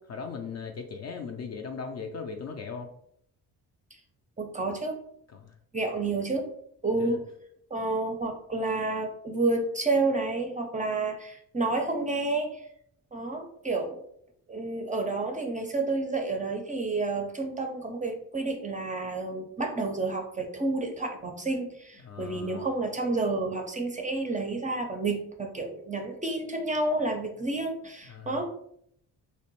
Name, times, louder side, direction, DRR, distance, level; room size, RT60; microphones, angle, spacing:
voice 1, 0.1-2.9 5.3-5.5 6.9-7.2 22.0-22.8 28.1-28.4, left 5 dB, 40° left, 4 dB, 0.4 m, -38 dB
voice 2, 4.4-5.0 5.7-6.5 6.8-7.2 7.7-12.6 13.1-14.0 14.5-28.4, right 3 dB, 20° right, 3 dB, 0.5 m, -30 dB
2.5 x 2.1 x 2.9 m, 0.70 s
supercardioid pair, 55°, 42 cm